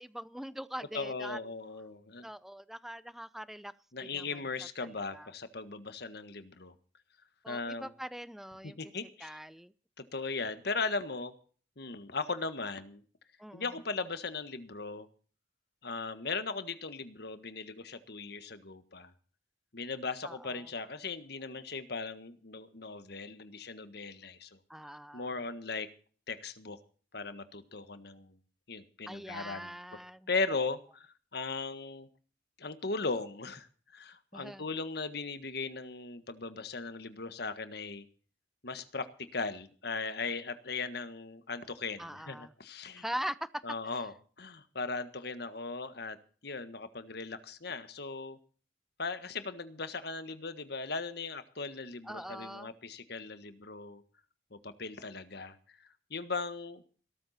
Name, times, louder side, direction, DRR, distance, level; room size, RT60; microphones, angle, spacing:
voice 1, 0.0-1.4 2.2-3.7 4.0-4.4 4.8-5.3 7.4-8.8 9.2-9.7 13.4-13.7 20.2-20.7 24.7-25.3 29.1-30.3 34.3-34.7 42.0-42.5 43.0-43.6 52.0-52.7, equal, ahead, 16 dB, 0.6 m, -42 dB
voice 2, 0.9-2.3 3.9-6.7 7.5-7.9 8.6-9.4 10.1-11.3 11.8-13.0 13.5-15.1 15.8-19.1 19.7-24.6 25.1-25.9 26.3-26.8 27.1-28.4 28.7-29.7 30.3-32.1 32.6-38.1 38.6-43.0 43.6-46.2 46.4-48.4 49.0-54.0 54.5-56.8, left 4 dB, 60° left, 11 dB, 1.6 m, -38 dB
17.5 x 13.5 x 4.3 m, 0.41 s
head